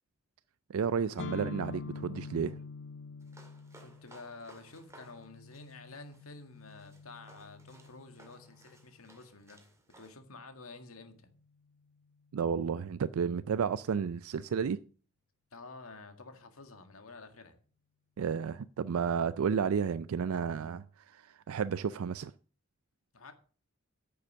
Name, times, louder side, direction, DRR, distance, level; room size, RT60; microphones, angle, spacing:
voice 1, 0.7-2.6 12.3-14.8 18.2-22.3, right 6 dB, 90° right, 0.4 m, -32 dB
sound 1, 1.2-8.9, left 4 dB, 60° left, 0.4 m, -46 dB
sound 2, 3.2-10.1, right 2 dB, 15° right, 2.1 m, -60 dB
voice 2, 3.8-9.6 10.0-11.3 15.5-17.6 23.1-23.3, left 3 dB, 85° left, 1.9 m, -50 dB
9.9 x 6.9 x 6.2 m
head